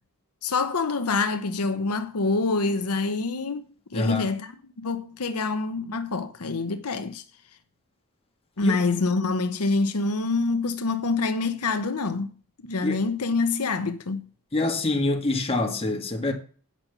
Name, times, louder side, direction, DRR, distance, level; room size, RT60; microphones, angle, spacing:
voice 1, 0.4-3.6 3.9-7.2 8.6-12.3 12.6-14.2, left 3 dB, 90° left, 0.9 m, -26 dB
voice 2, 3.9-4.3 8.6-8.8 12.8-13.0 14.5-16.3, left 2 dB, 25° left, 2.0 m, -25 dB
8.6 x 6.0 x 7.1 m
head